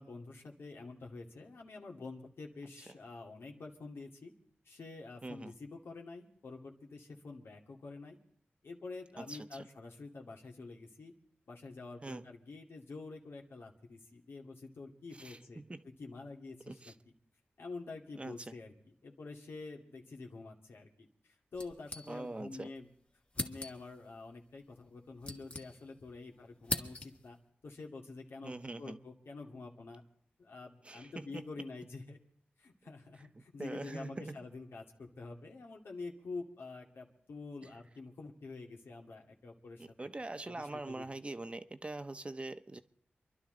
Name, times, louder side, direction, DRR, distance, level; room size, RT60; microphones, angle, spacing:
voice 1, 0.0-4.3 4.7-8.2 8.6-11.1 11.5-15.6 16.0-16.9 17.6-18.7 19.0-21.1 21.5-22.9 23.4-27.4 27.6-30.0 30.4-32.2 32.6-39.9 40.5-41.1, left 3 dB, 80° left, 1 dB, 2.4 m, -47 dB
voice 2, 5.2-5.5 9.2-9.7 12.0-12.3 15.1-15.8 16.6-16.9 18.2-18.5 22.1-22.7 28.4-29.0 30.8-31.5 33.1-34.4 37.6-37.7 39.8-42.8, right 2 dB, 30° right, 10 dB, 1.0 m, -43 dB
sound 1, 21.5-22.6 22.8-22.9 23.3-24.0 24.8-26.1 26.4-27.4, left 2 dB, 35° left, 1.7 m, -41 dB
28.0 x 11.5 x 3.9 m, 0.66 s
wide cardioid pair, 70°, 4 cm